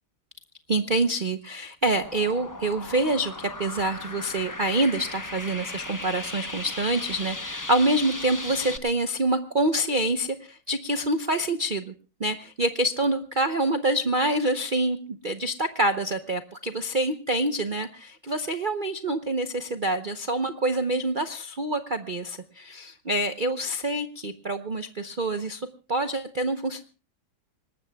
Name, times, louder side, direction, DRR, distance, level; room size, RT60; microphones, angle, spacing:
voice 1, 0.7-11.9 12.2-26.8, right 1 dB, 60° right, 8 dB, 0.5 m, -26 dB
sound 1, 1.8-8.8, left 2 dB, 25° left, 0.4 m, -37 dB
26.0 x 20.0 x 2.3 m, 0.33 s
omnidirectional pair, 2.1 m